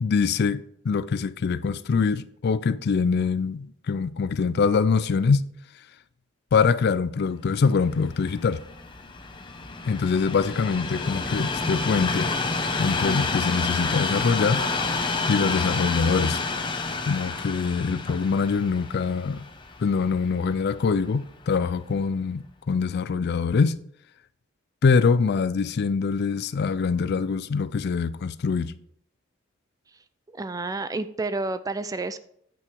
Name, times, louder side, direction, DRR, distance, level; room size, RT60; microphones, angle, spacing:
voice 1, 0.0-5.5 6.5-8.6 9.8-12.3 12.8-14.6 15.3-16.4 17.1-19.5 19.8-23.8 24.8-28.7, left 5 dB, 55° left, 0.4 m, -24 dB
Train, 7.8-21.0 21.7-21.8, left 3 dB, 25° left, 0.8 m, -29 dB
voice 2, 30.3-32.2, right 3 dB, 20° right, 0.4 m, -30 dB
8.8 x 5.8 x 4.6 m
head